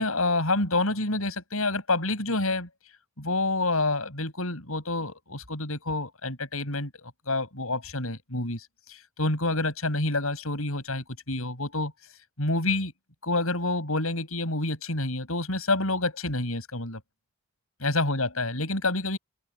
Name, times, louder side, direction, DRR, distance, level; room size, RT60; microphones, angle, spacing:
voice 1, 0.0-2.7 3.2-11.9 12.4-12.9 13.2-17.0 17.8-19.2, left 2 dB, 75° left, 7.5 m, -28 dB
open air
head